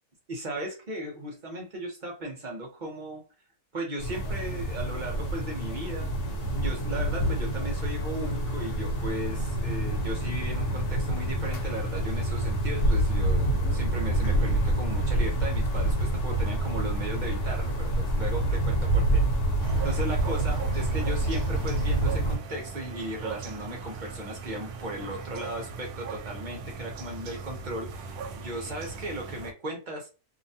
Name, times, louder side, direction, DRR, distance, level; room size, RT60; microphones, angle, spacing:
voice 1, 0.3-3.2 3.7-6.1 6.6-19.3 19.8-30.1, right 1 dB, 45° right, 0 dB, 0.6 m, -36 dB
sound 1, 4.0-22.4, right 1 dB, 70° left, 1.3 m, -27 dB
sound 2, 19.6-29.5, right 5 dB, 75° right, 1.0 m, -39 dB
2.8 x 2.2 x 2.7 m, 0.31 s
omnidirectional pair, 1.7 m